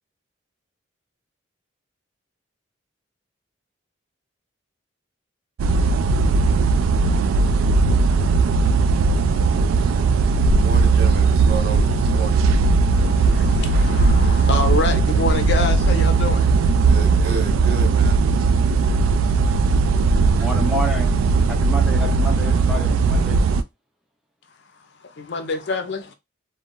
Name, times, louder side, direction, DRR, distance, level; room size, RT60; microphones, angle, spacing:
sound 1, 5.6-23.6, right 4 dB, 85° right, 0.3 m, -18 dB
voice 1, 10.5-12.4 16.9-18.2 20.1-20.5, right 3 dB, 50° right, 0.6 m, -32 dB
voice 2, 12.9-16.5 25.2-26.1, left 4 dB, 55° left, 0.5 m, -26 dB
voice 3, 20.4-21.2 21.5-23.4, equal, ahead, 0.3 m, -29 dB
2.2 x 2.0 x 3.6 m
head